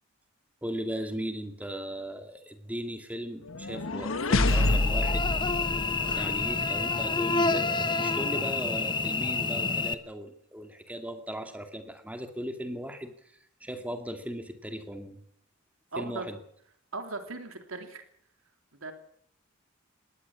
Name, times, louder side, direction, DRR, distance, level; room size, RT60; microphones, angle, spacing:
voice 1, 0.6-5.3 6.1-13.1 13.6-15.2 16.0-16.4, equal, 5° right, 6 dB, 2.4 m, -37 dB
sound 1, 3.5-6.6, left 2 dB, 70° left, 1.3 m, -27 dB
Cricket / Buzz, 4.5-9.9, left 3 dB, 20° left, 1.1 m, -28 dB
voice 2, 15.9-16.3 16.9-18.0 18.7-18.9, right 3 dB, 80° right, 6 dB, 3.1 m, -38 dB
20.5 x 18.0 x 7.2 m, 0.64 s
head